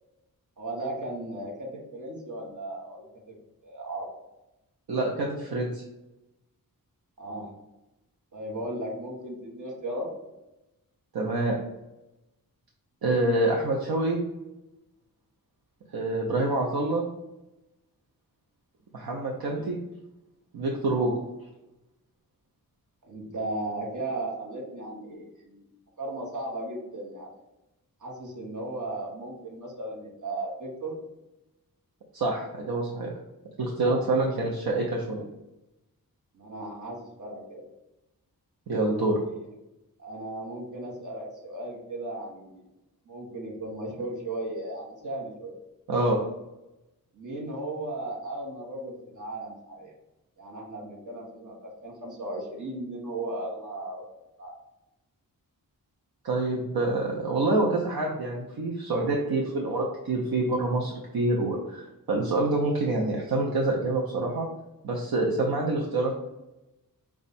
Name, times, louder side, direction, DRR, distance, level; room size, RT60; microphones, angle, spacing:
voice 1, 0.6-3.4 3.6-4.1 7.2-7.5 8.3-10.1 19.4-19.7 20.9-21.1 23.0-25.6 26.0-27.3 28.0-31.0 33.8-34.0 36.3-37.6 39.3-39.4 40.0-42.7 43.0-45.6 47.1-49.9 50.4-54.0 54.4-54.5, right 2 dB, 55° right, -3 dB, 1.3 m, -36 dB
voice 2, 4.9-5.8 11.1-11.5 13.0-14.2 15.9-17.0 18.9-19.8 20.5-21.1 32.1-33.1 33.6-35.3 38.7-39.2 45.9-46.2 56.2-64.5 64.8-66.2, right 2 dB, 85° right, -1 dB, 0.7 m, -26 dB
5.2 x 2.4 x 4.1 m, 0.96 s
wide cardioid pair, 95°, 36 cm